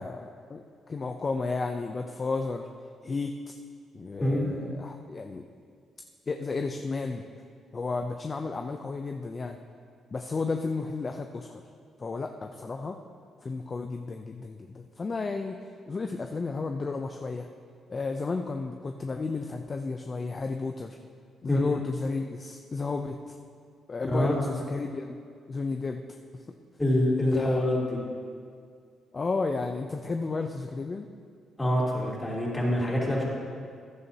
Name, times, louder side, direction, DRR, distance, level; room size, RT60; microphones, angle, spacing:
voice 1, 0.0-2.7 3.0-3.3 3.9-5.5 6.3-7.2 7.7-9.6 10.1-11.6 12.0-13.0 13.4-15.6 15.9-17.5 17.9-21.0 21.4-23.3 23.9-25.2 25.5-26.0 26.3-26.4 27.3-27.6 29.1-31.1, left 3 dB, 35° left, 5 dB, 0.5 m, -32 dB
voice 2, 26.8-28.0 31.6-33.2, left 1 dB, 15° left, -5 dB, 3.1 m, -25 dB
15.0 x 11.0 x 2.8 m, 2.2 s
cardioid pair, 90°, 0 cm